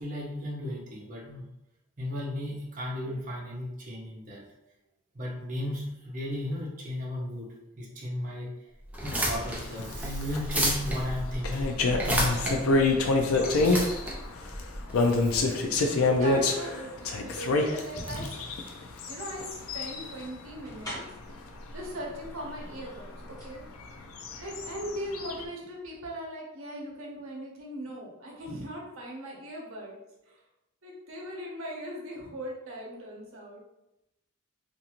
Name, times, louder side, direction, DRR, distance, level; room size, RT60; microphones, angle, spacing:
voice 1, 0.0-1.5 2.0-4.4 5.1-7.5 7.8-8.5 9.0-11.7 12.2-13.8 14.9-15.4, left 1 dB, 35° right, -4 dB, 0.7 m, -35 dB
sound 1, 8.9-15.4, equal, 5° right, 0.4 m, -31 dB
sound 2, 9.0-20.2 20.6-20.8 21.2-21.4 21.7-21.8 22.2-22.3 22.6-22.7 23.8-25.5, left 3 dB, 85° left, 0.4 m, -27 dB
sound 3, 15.0-15.2 16.0-21.4 22.3-22.4 22.8-23.6 23.9-24.0, equal, 15° left, 1.1 m, -44 dB
voice 2, 15.2-18.4 19.1-19.5 19.7-21.0 21.7-23.1 23.4-23.6 24.4-30.0 30.3-30.4 30.8-33.6, equal, 75° right, -2 dB, 0.7 m, -39 dB
2.6 x 2.4 x 2.8 m, 0.90 s
head